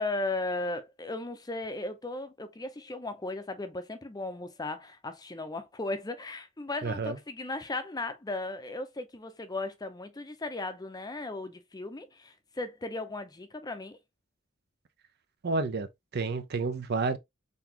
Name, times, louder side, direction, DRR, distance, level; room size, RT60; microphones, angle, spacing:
voice 1, 0.0-14.0, left 2 dB, 20° left, 0.6 m, -36 dB
voice 2, 6.8-7.2 15.4-15.9 16.1-17.2, right 3 dB, 50° right, 0.6 m, -30 dB
4.0 x 3.5 x 2.8 m
head